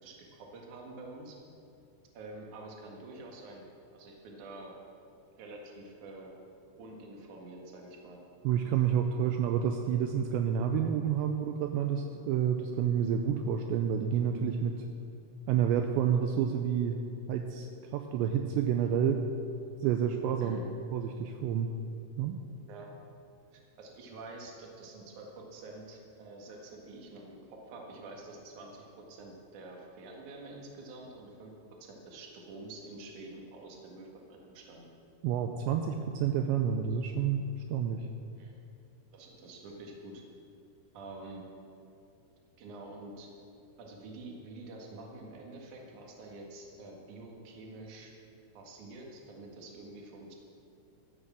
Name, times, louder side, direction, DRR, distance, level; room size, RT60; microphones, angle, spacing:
voice 1, 0.0-1.4 2.1-3.6 3.9-4.8 5.4-6.3 6.8-8.2 20.4-20.7 22.7-22.9 23.5-31.5 31.8-34.9 38.4-38.6 39.1-40.2 40.9-41.4 42.6-43.3 43.8-48.1 48.5-50.3, right 2 dB, 55° right, 0 dB, 2.6 m, -47 dB
voice 2, 8.4-14.7 15.5-17.0 17.3-17.7 17.9-19.2 19.8-20.6 20.9-21.7 22.2-22.4 35.2-37.4 37.7-38.0, right 8 dB, 80° right, 5 dB, 2.8 m, -29 dB
12.5 x 8.2 x 7.4 m, 2.5 s
omnidirectional pair, 5.3 m